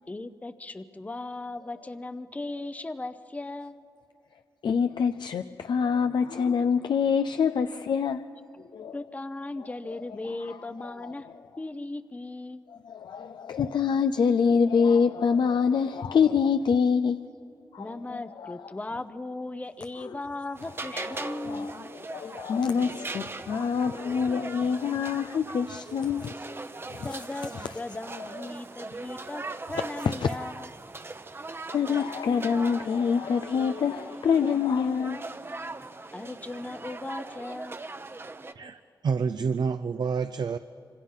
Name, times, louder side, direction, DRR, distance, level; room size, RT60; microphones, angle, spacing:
voice 1, 0.1-3.8 8.9-11.3 11.6-12.6 17.8-21.7 27.0-30.7 36.1-37.8, left 2 dB, 20° left, 0.7 m, -37 dB
voice 2, 4.6-8.3 8.7-9.0 10.5-10.6 12.8-17.2 17.7-18.6 21.2-21.7 22.1-26.3 26.9-27.1 30.1-30.4 31.7-35.2, left 6 dB, 80° left, 0.6 m, -25 dB
sound 1, 20.6-38.5, right 3 dB, 30° right, 0.9 m, -40 dB
voice 3, 38.6-40.6, right 5 dB, 70° right, 0.6 m, -28 dB
26.5 x 26.0 x 5.6 m
wide cardioid pair, 90°, 8 cm